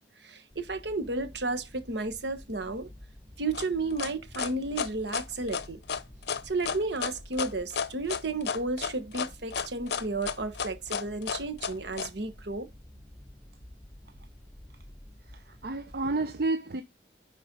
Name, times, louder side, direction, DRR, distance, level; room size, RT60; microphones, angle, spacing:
voice 1, 0.2-2.9 3.4-5.8 6.4-12.7, right 3 dB, 75° right, 1.3 m, -32 dB
sound 1, 0.5-16.1, left 1 dB, 10° left, 1.0 m, -51 dB
sound 2, 3.5-12.1, left 6 dB, 65° left, 0.6 m, -32 dB
voice 2, 15.3-16.8, right 2 dB, 55° right, 0.6 m, -30 dB
9.9 x 4.4 x 3.9 m
head